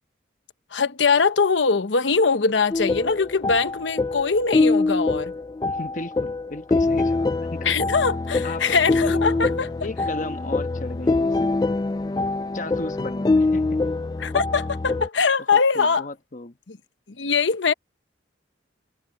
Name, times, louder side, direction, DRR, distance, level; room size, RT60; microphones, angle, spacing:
voice 1, 0.7-5.3 7.6-9.7 14.2-16.1 16.7-16.8 17.2-17.7, left 5 dB, 85° left, 1.0 m, -22 dB
sound 1, 2.7-15.1, left 3 dB, 20° left, 0.3 m, -24 dB
voice 2, 5.7-7.8 8.4-8.6 8.9-9.2 9.8-11.7 12.5-13.8 15.7-16.6, left 2 dB, 45° left, 1.2 m, -35 dB
head